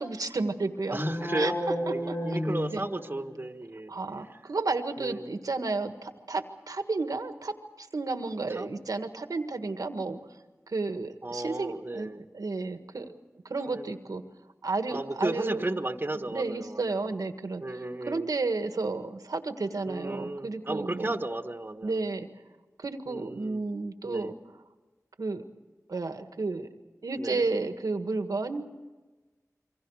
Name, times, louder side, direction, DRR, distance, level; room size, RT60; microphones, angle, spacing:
voice 1, 0.0-1.0 1.4-1.5 2.1-2.2 2.7-2.9 3.9-10.2 10.7-13.1 13.5-14.2 14.6-15.8 16.1-17.6 18.1-21.2 21.8-22.3 22.8-24.4 25.2-25.5 25.9-26.7 27.0-28.8, right 3 dB, 90° right, 7 dB, 1.6 m, -32 dB
sound 1, 0.8-3.4, left 1 dB, 65° left, 7.8 m, -31 dB
voice 2, 0.9-1.5 1.9-3.9 5.0-5.3 8.5-8.7 11.2-12.2 13.6-13.9 14.9-17.0 17.6-18.3 19.9-22.0 23.1-23.6 24.0-24.3 27.2-27.4, right 2 dB, 35° right, 6 dB, 1.5 m, -34 dB
28.0 x 24.0 x 4.9 m, 1.2 s
wide cardioid pair, 45°, 6 cm